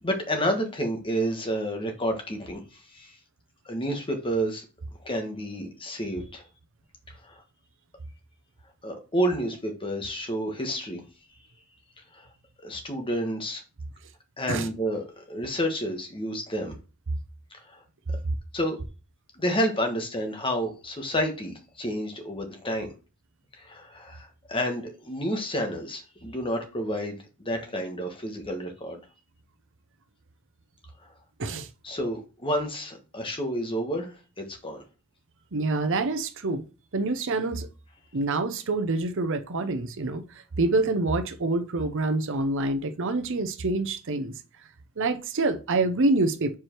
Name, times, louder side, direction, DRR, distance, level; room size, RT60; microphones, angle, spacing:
voice 1, 0.0-3.2 3.6-4.6 5.0-6.4 7.2-7.4 8.8-11.0 12.1-12.3 12.6-13.6 14.4-16.7 17.5-17.8 18.5-18.8 19.3-22.9 23.6-29.0 31.8-34.8, equal, 25° left, 1.2 m, -30 dB
voice 2, 35.5-36.6 36.9-37.7 38.1-44.3 45.0-46.5, right 2 dB, 60° right, 0.7 m, -26 dB
4.8 x 4.8 x 4.4 m
head